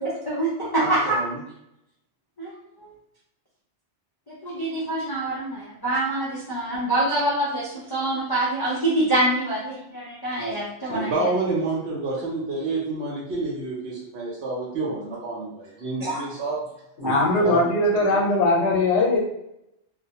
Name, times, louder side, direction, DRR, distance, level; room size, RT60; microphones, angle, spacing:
voice 1, 0.0-1.2 2.4-2.5 4.3-11.3 16.0-16.2 17.0-17.2, right 1 dB, 30° left, -8 dB, 0.4 m, -25 dB
voice 2, 0.7-1.4 10.8-16.6 17.4-17.6 17.9-18.2, right 3 dB, 75° right, -5 dB, 0.9 m, -29 dB
voice 3, 17.0-19.2, left 2 dB, 80° left, -2 dB, 1.1 m, -20 dB
2.4 x 2.1 x 2.7 m, 0.80 s
omnidirectional pair, 1.2 m